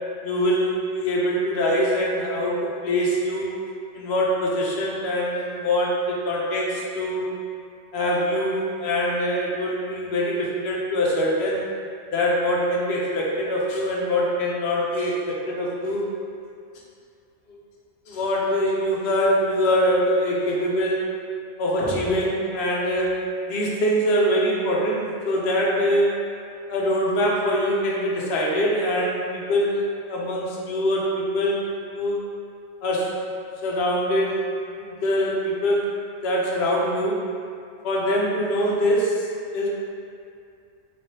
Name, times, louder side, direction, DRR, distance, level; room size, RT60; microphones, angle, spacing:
voice 1, 0.2-3.5 3.9-7.3 7.9-11.6 12.1-16.1 18.1-21.1 21.6-23.2 23.5-26.1 26.7-32.2 32.8-33.2 33.6-34.4 34.8-35.8 36.2-37.2 37.8-39.3 39.5-39.7, equal, 60° left, -3 dB, 0.8 m, -23 dB
3.2 x 3.2 x 2.7 m, 2.3 s
omnidirectional pair, 1.3 m